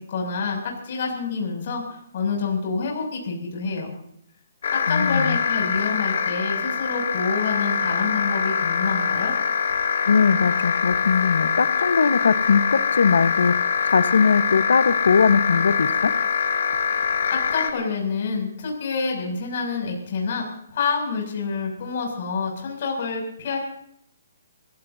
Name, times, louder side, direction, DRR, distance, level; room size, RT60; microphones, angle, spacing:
voice 1, 0.1-3.9 4.9-9.3 17.3-20.4 20.7-23.6, left 4 dB, 45° left, 0 dB, 7.2 m, -27 dB
sound 1, 4.6-17.7, left 6 dB, 65° left, 2.5 m, -24 dB
voice 2, 4.9-5.4 10.1-16.1, left 5 dB, 85° left, 12 dB, 1.3 m, -20 dB
28.5 x 17.5 x 2.8 m, 0.68 s
hypercardioid pair, 170°, 0 cm